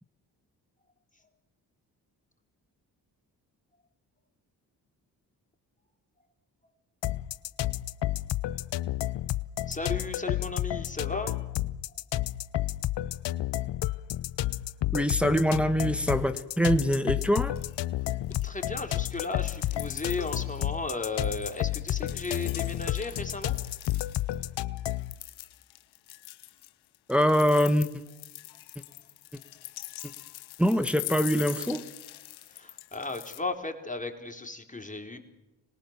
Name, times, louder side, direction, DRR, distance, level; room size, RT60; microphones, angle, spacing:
sound 1, 7.0-25.1, left 14 dB, 65° left, 0.8 m, -31 dB
voice 1, 9.7-11.6 18.0-18.1 18.4-23.6 32.5-35.2, left 3 dB, 15° left, 5 dB, 4.0 m, -35 dB
voice 2, 14.9-17.5 27.1-27.9 30.6-31.8, equal, ahead, 9 dB, 1.6 m, -24 dB
sound 2, 15.4-15.5 15.8-16.4 16.7-17.8 18.1-24.4 24.8-33.4, left 17 dB, 85° left, 1.1 m, -43 dB
26.0 x 19.5 x 7.4 m, 0.98 s
supercardioid pair, 50°, 46 cm